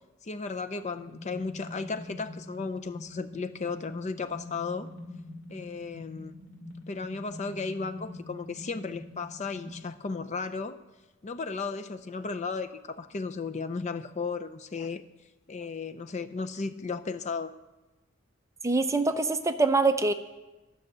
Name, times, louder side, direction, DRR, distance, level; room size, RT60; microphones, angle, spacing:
voice 1, 0.2-4.9 5.5-6.3 6.9-10.8 11.2-15.0 15.5-17.5, left 4 dB, 35° left, 10 dB, 0.5 m, -35 dB
sound 1, 1.0-9.9, left 2 dB, 70° left, 2.2 m, -45 dB
voice 2, 18.6-20.1, right 3 dB, 15° right, 8 dB, 0.5 m, -24 dB
13.0 x 6.4 x 7.9 m, 1.1 s
head